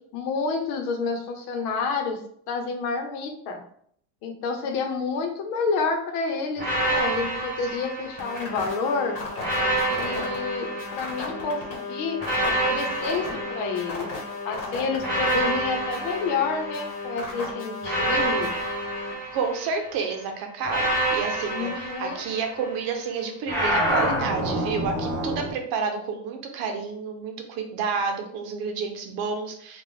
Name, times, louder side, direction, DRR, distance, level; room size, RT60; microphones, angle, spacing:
voice 1, 0.1-2.2 2.5-3.6 4.2-9.2 9.9-14.1 14.4-18.5 21.5-22.2, left 4 dB, 70° left, 4 dB, 1.0 m, -29 dB
sound 1, 6.6-8.7 9.4-11.5 12.2-14.4 15.0-17.2 17.8-20.0 20.6-22.8 23.5-25.5, right 1 dB, 20° right, 1.6 m, -28 dB
sound 2, 8.2-19.1, left 3 dB, 35° left, 1.2 m, -35 dB
voice 2, 19.3-29.8, right 5 dB, 60° right, 4 dB, 0.9 m, -30 dB
4.4 x 2.5 x 3.5 m, 0.65 s
cardioid pair, 155°, 41 cm